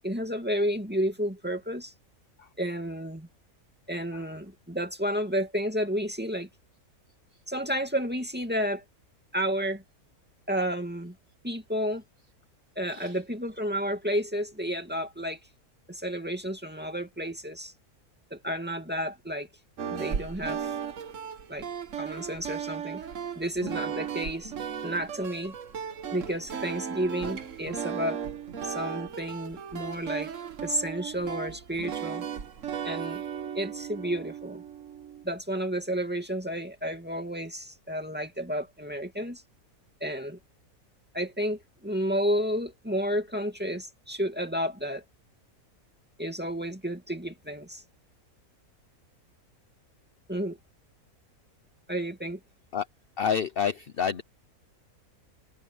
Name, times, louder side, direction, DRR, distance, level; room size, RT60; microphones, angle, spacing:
voice 1, 0.0-1.9 2.6-3.3 3.9-6.5 7.5-8.8 9.3-9.8 10.5-11.2 11.4-12.0 12.8-15.4 15.9-17.7 18.3-19.5 19.9-20.8 21.5-21.7 22.0-23.0 23.4-24.5 24.8-25.5 26.1-28.2 28.6-30.3 30.6-32.2 32.8-33.2 33.5-34.6 35.2-39.4 40.0-40.4 41.1-45.0 46.2-47.8 50.3-50.6 51.9-52.4, equal, 5° right, 2.4 m, -31 dB
sound 1, 19.8-35.2, right 8 dB, 60° right, 1.5 m, -36 dB
voice 2, 53.2-54.2, left 7 dB, 50° left, 0.8 m, -28 dB
omnidirectional pair, 1.6 m